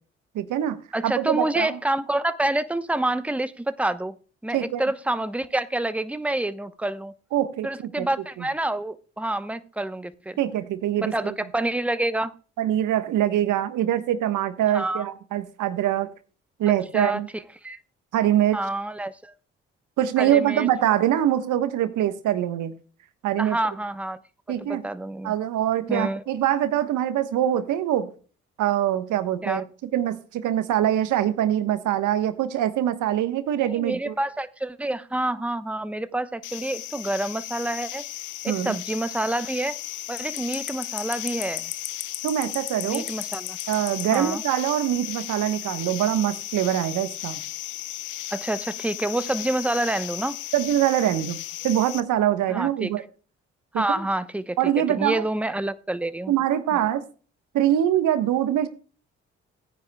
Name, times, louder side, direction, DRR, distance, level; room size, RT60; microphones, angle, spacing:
voice 1, 0.3-0.8 1.0-1.8 4.5-4.8 7.3-8.1 8.4-8.5 10.4-11.4 12.6-16.1 16.6-17.3 18.1-18.6 20.0-22.7 23.2-23.6 24.5-24.8 25.2-28.1 28.6-34.2 38.4-38.8 42.2-43.0 43.7-47.4 50.5-51.4 51.6-53.0 53.7-54.0 54.6-55.2 56.3-57.0 57.5-58.7, right 11 dB, 75° right, 1.2 m, -24 dB
voice 2, 0.9-4.1 4.4-7.1 7.6-10.4 11.0-12.3 14.7-15.1 16.9-17.2 17.6-17.8 18.5-19.3 20.2-20.7 23.4-24.2 24.7-25.3 25.9-26.2 29.4-29.6 33.7-38.0 38.4-39.8 40.1-41.7 42.9-43.6 44.1-44.4 48.3-50.4 52.5-52.9 53.7-56.3 56.7-56.8, right 1 dB, 5° right, 0.9 m, -27 dB
sound 1, 36.4-52.0, left 14 dB, 70° left, 0.8 m, -35 dB
16.0 x 9.7 x 2.3 m
hypercardioid pair, 45°, 31 cm